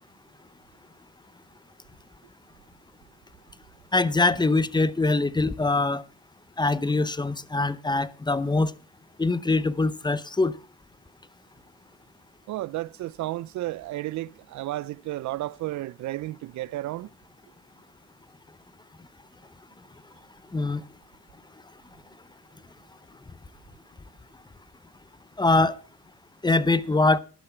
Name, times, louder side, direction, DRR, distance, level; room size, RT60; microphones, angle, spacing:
voice 1, 3.9-6.0 6.6-8.7 9.2-10.5 20.5-20.8 25.4-25.8 26.4-27.2, left 3 dB, 15° left, 0.7 m, -23 dB
voice 2, 12.5-17.1, right 16 dB, 70° right, 0.5 m, -32 dB
12.0 x 10.0 x 4.4 m
cardioid pair, 90°, 30 cm